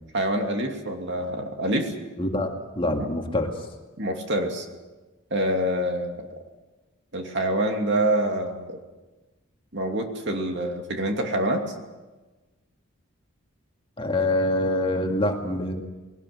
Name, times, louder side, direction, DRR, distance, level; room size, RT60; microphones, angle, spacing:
voice 1, 0.1-1.9 3.0-3.1 4.0-4.7 5.3-6.4 7.1-8.8 9.7-11.6, right 1 dB, 55° right, 3 dB, 2.7 m, -26 dB
voice 2, 2.2-3.5 14.0-15.8, left 1 dB, 25° left, 2 dB, 2.2 m, -25 dB
21.5 x 18.5 x 7.8 m, 1.2 s
head